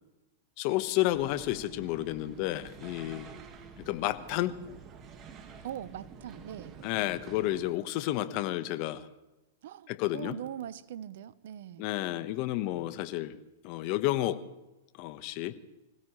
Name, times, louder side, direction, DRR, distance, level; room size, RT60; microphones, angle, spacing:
voice 1, 0.6-3.3 3.8-4.6 6.8-9.1 9.9-10.4 11.8-13.4 13.6-14.4 15.0-15.5, left 15 dB, 50° left, 11 dB, 1.3 m, -31 dB
sound 1, 1.1-7.7, right 5 dB, 30° right, 1.9 m, -49 dB
voice 2, 5.6-6.7 9.6-11.9, right 10 dB, 65° right, 14 dB, 1.0 m, -41 dB
26.0 x 16.5 x 3.3 m, 0.99 s
hypercardioid pair, 125°, 0 cm